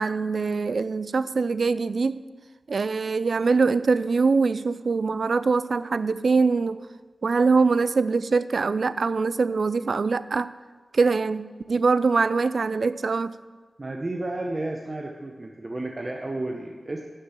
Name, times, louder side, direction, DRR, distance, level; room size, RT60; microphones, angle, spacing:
voice 1, 0.0-2.2 2.7-6.8 7.2-10.5 10.9-13.3, right 4 dB, 65° right, 15 dB, 0.4 m, -23 dB
voice 2, 13.8-17.0, right 2 dB, 35° right, 2 dB, 0.8 m, -32 dB
9.3 x 6.7 x 7.0 m, 1.4 s
wide cardioid pair, 85°, 0 cm